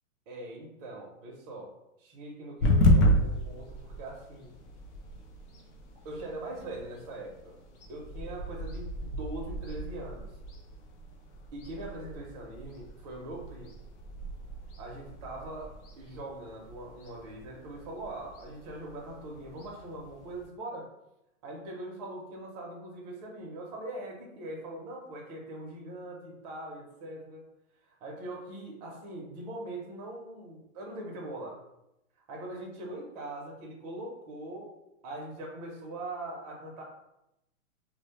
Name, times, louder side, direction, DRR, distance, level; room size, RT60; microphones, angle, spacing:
voice 1, 0.3-1.7 2.0-4.5 6.0-7.5 7.9-10.3 11.5-13.8 14.8-20.9 21.4-27.4 28.0-31.6 32.3-34.7 35.0-36.8, right 1 dB, 30° right, -1 dB, 0.5 m, -41 dB
sound 1, 2.6-20.5, left 1 dB, 60° left, 0.6 m, -33 dB
2.1 x 2.0 x 2.9 m, 0.87 s
hypercardioid pair, 140°, 41 cm